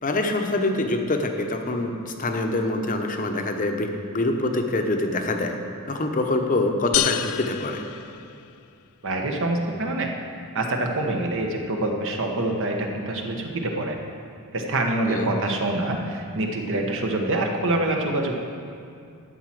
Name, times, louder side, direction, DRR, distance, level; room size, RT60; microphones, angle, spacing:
voice 1, 0.0-5.5 5.9-7.8 15.0-15.3, left 2 dB, 40° left, 4 dB, 0.8 m, -25 dB
sound 1, 6.9-8.8, left 13 dB, 70° left, 0.3 m, -28 dB
voice 2, 9.0-10.1 10.5-14.0 14.5-18.3, right 2 dB, 60° right, 2 dB, 1.1 m, -25 dB
12.5 x 4.3 x 7.5 m, 2.4 s
head